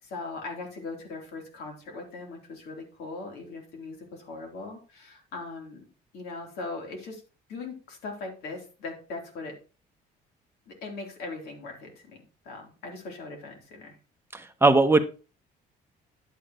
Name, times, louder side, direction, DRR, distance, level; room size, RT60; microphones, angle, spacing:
voice 1, 0.0-5.9 6.1-7.2 7.5-9.6 10.7-12.2 12.5-14.0, left 3 dB, 75° left, 1 dB, 3.4 m, -39 dB
voice 2, 14.3-15.0, right 3 dB, 15° right, 8 dB, 0.8 m, -19 dB
10.5 x 8.5 x 3.1 m, 0.34 s
cardioid pair, 110°, 17 cm